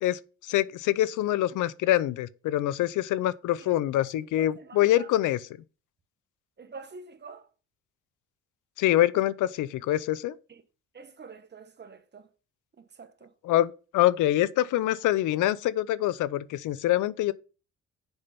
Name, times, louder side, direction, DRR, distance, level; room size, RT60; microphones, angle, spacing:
voice 1, 0.0-5.4 8.8-10.4 13.4-17.3, left 14 dB, 85° left, 0.6 m, -25 dB
voice 2, 3.6-5.3 6.6-7.5 10.5-10.6 10.9-12.3 12.8-13.3, right 4 dB, 35° right, 1.2 m, -47 dB
7.0 x 5.6 x 5.3 m
cardioid pair, 90°, 30 cm